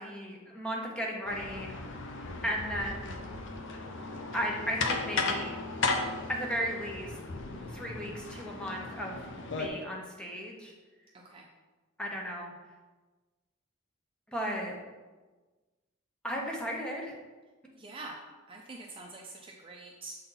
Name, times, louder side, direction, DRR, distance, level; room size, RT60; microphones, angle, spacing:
voice 1, 0.0-1.7 2.4-3.2 4.3-5.6 6.3-7.2 7.7-9.3 9.6-10.7 12.0-12.5 14.3-14.8 16.2-17.1, equal, 5° left, -1 dB, 0.9 m, -35 dB
sound 1, 1.3-9.7, left 3 dB, 65° left, 0.7 m, -35 dB
voice 2, 11.1-11.5 17.8-18.2 18.5-20.2, right 2 dB, 25° right, -1 dB, 0.5 m, -45 dB
6.9 x 4.2 x 3.9 m, 1.3 s
head